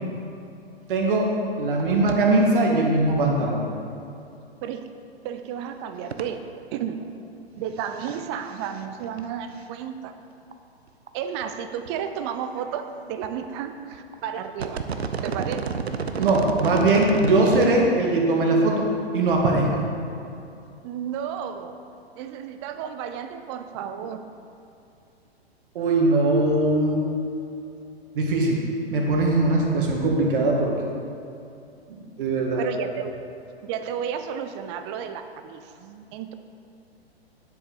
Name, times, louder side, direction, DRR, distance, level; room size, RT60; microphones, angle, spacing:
voice 1, 0.9-1.3 1.6-3.6 16.2-18.9 19.1-19.9 25.8-27.0 28.1-30.7 31.9-32.6, right 2 dB, 55° right, -1 dB, 1.9 m, -21 dB
sound 1, 1.3-1.4 1.6-1.8 2.1-2.2 2.5-2.6 4.8-4.9 6.1-6.2 7.8-8.2 8.5-9.2 9.6-9.7 10.5-10.6 11.1-11.2 11.4-11.5 11.9-12.3 13.2-13.4 13.9-14.1 14.5-17.7 18.1-18.2, right 5 dB, 80° right, 0.7 m, -31 dB
voice 2, 5.2-6.4 6.7-7.0 7.6-10.1 11.1-14.8 15.2-15.7 20.8-21.8 22.2-24.2 32.6-33.1 33.6-36.3, right 8 dB, 25° right, 8 dB, 0.5 m, -32 dB
9.6 x 7.8 x 4.0 m, 2.6 s
figure-of-eight pair, 115°, 32 cm